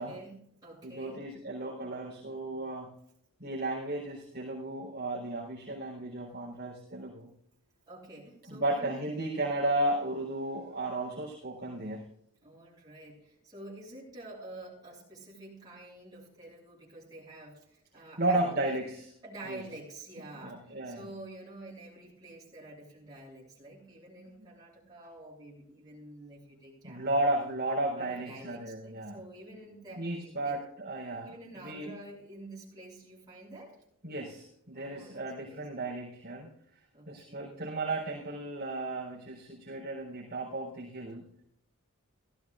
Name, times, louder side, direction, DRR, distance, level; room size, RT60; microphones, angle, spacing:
voice 1, 0.0-1.3 7.9-9.0 12.4-18.6 19.2-27.5 27.9-30.6 31.2-33.8 34.7-35.8 36.9-37.6, right 1 dB, 20° right, -5 dB, 6.8 m, -48 dB
voice 2, 0.8-2.9 3.4-7.3 8.5-12.1 18.2-19.1 19.5-19.6 20.4-21.1 26.8-29.2 30.0-31.9 34.0-36.5 37.1-41.3, right 2 dB, 45° right, -6 dB, 3.8 m, -34 dB
17.5 x 14.5 x 2.5 m, 0.70 s
head